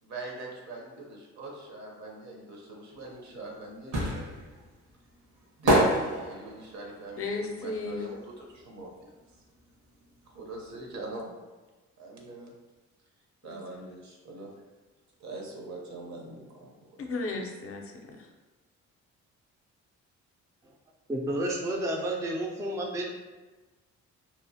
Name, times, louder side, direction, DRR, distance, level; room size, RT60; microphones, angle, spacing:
voice 1, 0.0-4.6 5.6-7.3 7.6-9.2 10.3-11.3 12.0-12.5 13.4-14.5 15.2-17.0, right 2 dB, 65° right, -1 dB, 0.8 m, -42 dB
sound 1, 3.0-8.9 9.2-10.8 11.0-11.1, right 1 dB, 80° right, 1.1 m, -28 dB
voice 2, 7.2-8.1 13.4-13.9 17.0-18.3, left 3 dB, 50° left, 2 dB, 0.5 m, -35 dB
voice 3, 21.1-23.1, right 1 dB, 10° right, 0 dB, 0.3 m, -30 dB
2.9 x 2.0 x 2.7 m, 1.2 s
cardioid pair, 90°, 30 cm